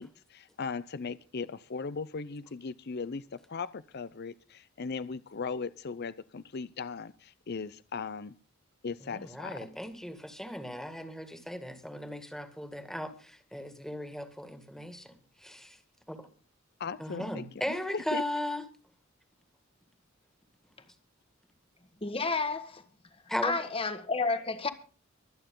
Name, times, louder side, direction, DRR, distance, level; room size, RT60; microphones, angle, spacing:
voice 1, 0.0-8.3 8.8-9.7 16.8-17.5 17.9-18.2, left 5 dB, 50° left, 0.6 m, -38 dB
voice 2, 9.0-15.2 15.4-15.8 16.1-16.3 17.0-18.6 23.3-23.6, left 1 dB, ahead, 2.0 m, -37 dB
voice 3, 22.0-22.8 23.4-24.7, left 3 dB, 25° left, 1.6 m, -30 dB
24.0 x 9.0 x 3.8 m
head